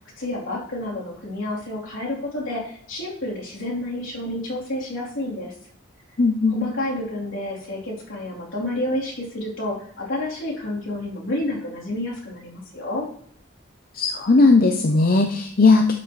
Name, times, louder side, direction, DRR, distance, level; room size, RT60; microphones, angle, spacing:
voice 1, 0.2-5.5 6.5-13.1, left 1 dB, 75° left, -5 dB, 3.4 m, -29 dB
voice 2, 6.2-6.6 13.9-15.9, left 3 dB, 45° left, 4 dB, 0.6 m, -17 dB
12.5 x 5.9 x 3.2 m, 0.63 s
head